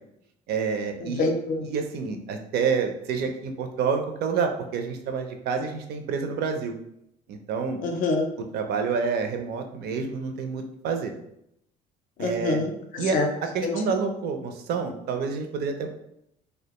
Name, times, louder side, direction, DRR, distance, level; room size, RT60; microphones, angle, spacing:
voice 1, 0.5-1.3 1.6-6.7 7.3-7.8 8.5-11.1 12.2-12.6 13.0-13.2 13.5-15.9, right 5 dB, 70° right, 5 dB, 0.5 m, -28 dB
voice 2, 1.0-1.7 7.8-8.3 12.2-13.3 13.6-13.8, left 3 dB, 55° left, 3 dB, 0.4 m, -26 dB
2.4 x 2.1 x 2.9 m, 0.77 s
cardioid pair, 110°, 17 cm